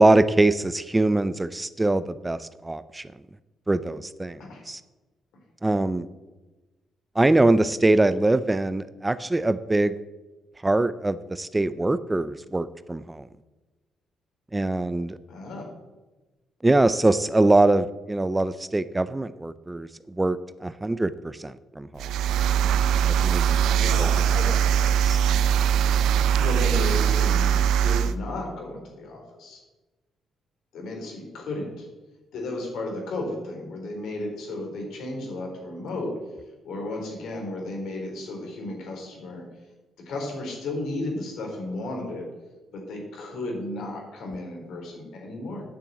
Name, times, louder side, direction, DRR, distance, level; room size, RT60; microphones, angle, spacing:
voice 1, 0.0-3.1 3.7-4.4 4.7-4.8 5.6-6.1 7.2-9.9 10.6-13.3 14.5-15.2 16.6-19.9 20.2-22.1 23.0-24.1 25.0-25.2, right 2 dB, 15° right, 15 dB, 0.5 m, -23 dB
voice 2, 15.3-15.7 23.7-24.5 26.3-29.6 30.7-31.9 32.3-36.2 36.6-39.4 40.1-42.3 42.7-45.6, left 2 dB, 75° left, 1 dB, 3.9 m, -34 dB
sound 1, 22.0-28.1, right 9 dB, 85° right, 0.5 m, -21 dB
9.1 x 6.9 x 8.2 m, 1.1 s
cardioid pair, 90°, 0 cm